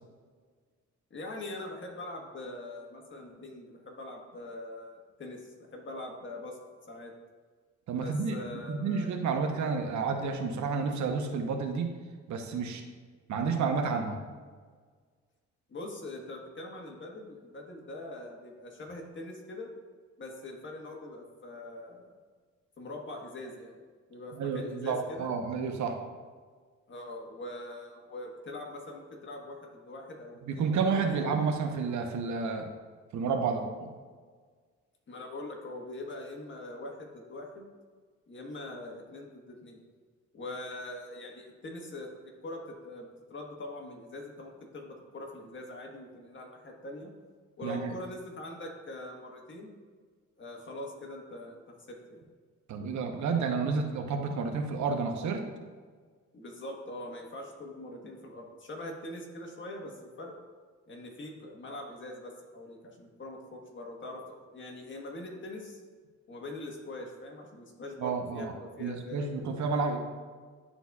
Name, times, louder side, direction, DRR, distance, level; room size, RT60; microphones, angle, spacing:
voice 1, 1.1-6.6 6.9-7.1 8.0-9.1 15.7-19.7 20.2-22.1 22.8-23.8 24.1-25.3 26.9-30.7 31.0-31.3 35.1-37.7 38.3-39.8 40.3-47.1 47.6-49.7 50.4-51.6 51.9-52.2 56.3-60.3 60.9-64.2 64.5-65.8 66.3-69.2, left 1 dB, 40° left, 0 dB, 1.4 m, -43 dB
voice 2, 7.9-11.9 12.3-12.8 13.3-14.2 24.3-25.9 30.5-32.7 33.1-33.9 47.6-47.9 52.7-55.4 68.0-68.5 68.8-70.0, right 5 dB, 70° right, 4 dB, 0.9 m, -30 dB
11.0 x 4.0 x 2.3 m, 1.5 s
cardioid pair, 90°, 30 cm